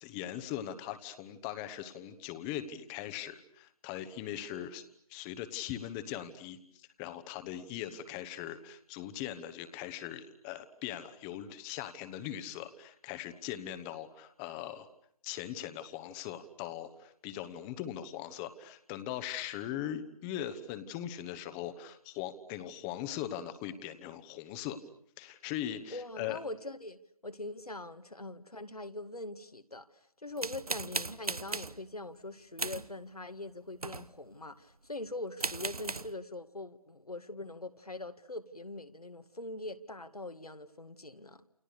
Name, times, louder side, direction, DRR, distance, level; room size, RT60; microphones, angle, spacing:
voice 1, 0.0-4.8 5.1-14.9 15.2-24.8 25.2-26.4, left 11 dB, 10° left, 1.1 m, -40 dB
voice 2, 25.9-41.4, left 2 dB, 85° left, 2.1 m, -43 dB
sound 1, 30.4-31.8 32.6-32.9 33.7-34.2 35.1-35.2 35.4-36.1, right 3 dB, 80° right, 1.2 m, -37 dB
29.5 x 29.0 x 6.7 m
figure-of-eight pair, 150°, 19 cm